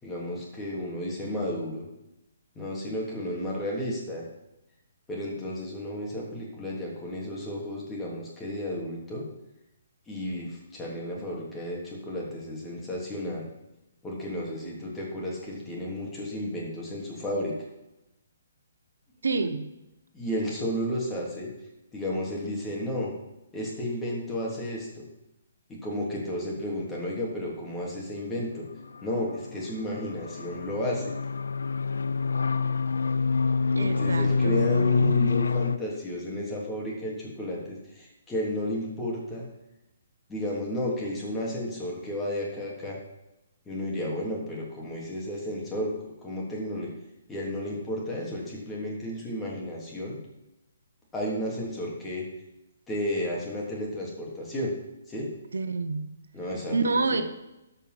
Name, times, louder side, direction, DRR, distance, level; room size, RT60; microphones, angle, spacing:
voice 1, 0.0-1.9 2.5-4.2 5.1-9.2 10.1-13.5 14.0-17.5 20.1-21.5 21.9-23.1 23.5-25.1 25.7-28.6 29.0-31.1 33.8-39.5 40.3-43.0 43.7-46.9 47.3-50.2 51.1-52.3 52.9-54.7 55.1-55.3 56.3-56.7 57.1-57.2, left 1 dB, 10° left, -4 dB, 3.2 m, -32 dB
voice 2, 19.2-19.7 33.7-35.2 55.5-56.2 56.7-57.2, right 3 dB, 80° right, 9 dB, 1.0 m, -28 dB
sound 1, 28.7-35.8, left 4 dB, 80° left, 0.6 m, -26 dB
13.5 x 5.6 x 6.1 m, 0.91 s
hypercardioid pair, 145°, 0 cm